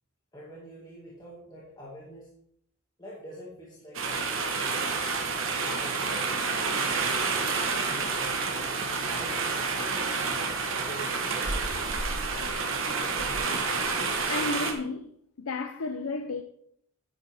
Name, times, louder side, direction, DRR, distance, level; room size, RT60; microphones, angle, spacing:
voice 1, 0.3-2.3 3.0-5.1 5.6-6.8 7.9-9.9 10.3-12.2, right 1 dB, 20° left, 1.9 m, -46 dB
sound 1, 3.9-14.7, right 4 dB, 60° right, 1.4 m, -29 dB
voice 2, 14.3-15.1 15.4-16.4, left 3 dB, 80° left, 0.6 m, -32 dB
9.8 x 9.7 x 3.5 m
head